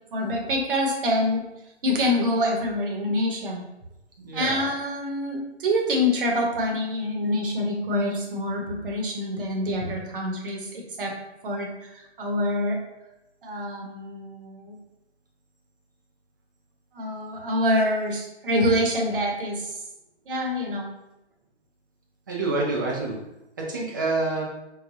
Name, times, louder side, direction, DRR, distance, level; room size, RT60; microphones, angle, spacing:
voice 1, 0.1-1.4 1.8-3.6 4.3-11.1 11.4-12.8 13.4-14.8 16.9-19.8 20.3-20.9, left 1 dB, 50° right, 0 dB, 1.0 m, -26 dB
voice 2, 4.2-4.7 22.3-23.2 23.6-24.4, right 3 dB, 20° right, -3 dB, 0.4 m, -27 dB
4.8 x 2.3 x 2.6 m, 0.91 s
figure-of-eight pair, 135°, 34 cm